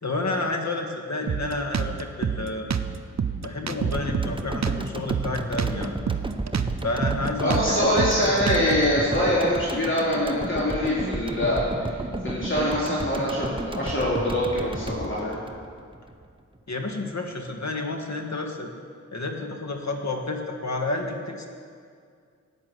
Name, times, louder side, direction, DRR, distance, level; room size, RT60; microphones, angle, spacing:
voice 1, 0.0-2.7 3.4-5.9 6.8-7.9 16.7-18.7 19.1-21.5, left 2 dB, 65° left, 3 dB, 1.7 m, -30 dB
Drum kit, 1.3-8.9, right 7 dB, 60° right, 0.7 m, -28 dB
sound 1, 3.9-16.3 16.6-16.7, right 2 dB, 15° right, 0.9 m, -33 dB
voice 2, 7.4-12.0 12.2-15.4, left 1 dB, 40° left, -7 dB, 2.7 m, -24 dB
11.0 x 9.4 x 7.8 m, 2.2 s
cardioid pair, 50°, 31 cm